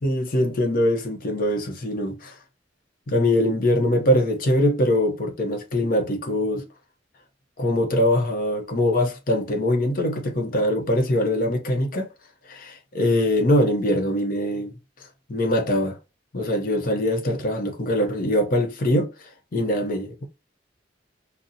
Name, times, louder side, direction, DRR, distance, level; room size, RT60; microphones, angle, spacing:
voice 1, 0.0-2.3 3.1-6.6 7.6-12.1 12.5-14.7 15.3-16.0 16.3-19.1 19.5-20.3, left 1 dB, 50° left, 0.7 m, -22 dB
3.9 x 2.0 x 2.6 m
head